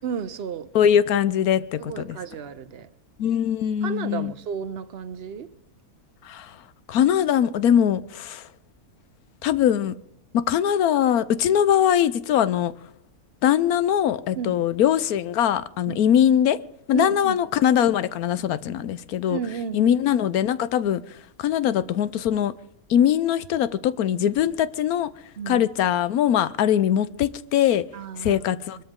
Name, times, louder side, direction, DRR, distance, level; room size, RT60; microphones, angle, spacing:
voice 1, 0.0-0.7 1.8-2.9 3.8-5.5 14.3-14.6 15.9-16.0 16.9-17.4 19.3-19.9 25.4-25.7 27.9-28.4, right 7 dB, 50° right, 0.9 m, -32 dB
voice 2, 0.7-2.2 3.2-4.3 6.2-6.6 6.9-8.5 9.4-9.9 10.3-12.7 13.4-16.6 16.9-19.4 19.7-21.0 21.4-22.5 22.9-25.1 25.5-27.8 28.2-28.8, left 9 dB, 85° left, 1.2 m, -21 dB
23.5 x 13.0 x 3.7 m
omnidirectional pair, 1.5 m